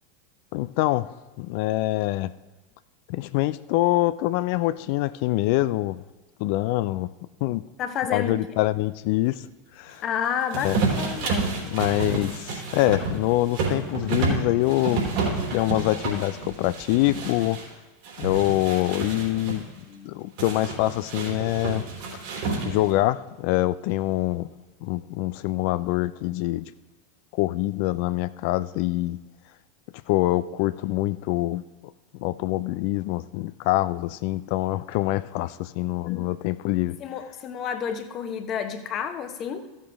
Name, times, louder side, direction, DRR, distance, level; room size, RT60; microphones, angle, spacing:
voice 1, 0.5-2.3 3.1-6.0 6.4-7.1 7.4-7.6 8.1-9.4 9.7-10.0 10.6-10.8 11.7-15.1 15.5-17.6 18.2-19.7 20.1-21.9 22.6-24.5 24.8-26.7 27.3-29.2 30.1-31.6 32.2-37.0, left 17 dB, 60° left, 0.3 m, -25 dB
voice 2, 7.8-8.4 10.0-11.7 19.8-20.3 36.0-36.3 37.0-39.7, left 8 dB, 40° left, 1.0 m, -31 dB
sound 1, 10.5-17.7 18.0-19.6 20.4-23.0, right 4 dB, 60° right, 3.7 m, -29 dB
15.0 x 7.4 x 3.5 m
hypercardioid pair, 90°, 0 cm